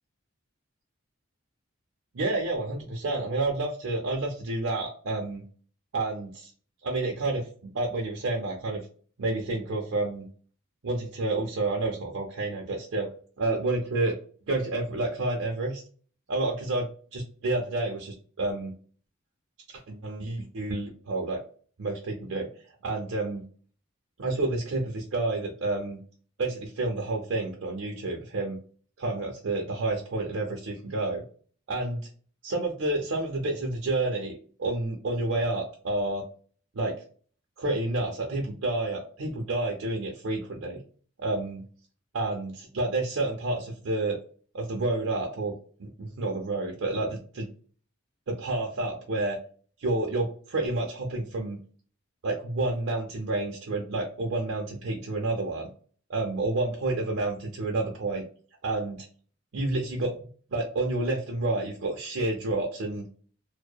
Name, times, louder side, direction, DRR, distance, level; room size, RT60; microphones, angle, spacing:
voice 1, 2.1-5.4 5.9-6.5 6.8-8.8 9.2-10.3 10.8-13.1 13.4-14.1 14.5-15.8 16.3-18.7 19.7-21.4 21.8-22.5 22.8-23.4 24.2-26.0 26.4-28.6 29.0-31.2 31.7-32.0 32.4-36.2 36.7-37.0 37.6-40.8 41.2-41.6 42.1-44.2 44.5-45.5 45.8-47.5 48.3-49.4 49.8-51.6 52.2-55.7 56.1-58.2 58.6-59.1 59.5-60.2 60.5-63.1, right 2 dB, 75° right, -2 dB, 0.6 m, -29 dB
2.7 x 2.0 x 2.2 m, 0.42 s
head